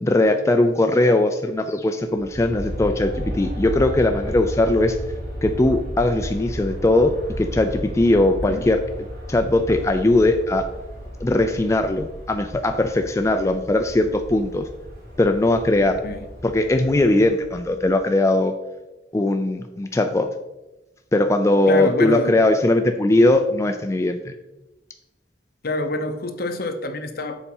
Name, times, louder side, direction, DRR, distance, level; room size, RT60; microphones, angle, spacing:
voice 1, 0.0-5.0 5.4-8.8 9.3-10.7 11.2-14.7 15.2-16.0 16.4-18.5 19.1-20.3 21.1-24.3, left 2 dB, 15° left, 6 dB, 0.3 m, -19 dB
Aircraft, 2.1-18.1, equal, 60° right, 2.7 m, -34 dB
voice 2, 21.7-22.4 25.6-27.3, left 2 dB, 60° left, 6 dB, 0.8 m, -26 dB
7.1 x 4.2 x 5.4 m, 1.0 s
head